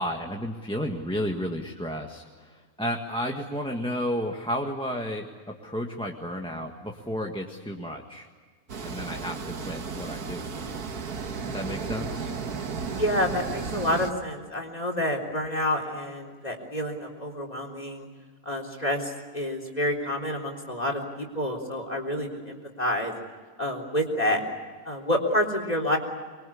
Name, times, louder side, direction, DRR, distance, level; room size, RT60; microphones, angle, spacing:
voice 1, 0.0-8.3 8.8-10.6 11.4-12.3, equal, 5° left, 1 dB, 1.6 m, -32 dB
sound 1, 8.7-14.1, right 5 dB, 80° right, 2.0 m, -34 dB
voice 2, 12.8-18.1 18.5-23.1 23.6-24.4 24.9-26.0, left 1 dB, 25° left, 3 dB, 3.9 m, -28 dB
25.0 x 23.0 x 8.6 m, 1.5 s
omnidirectional pair, 1.6 m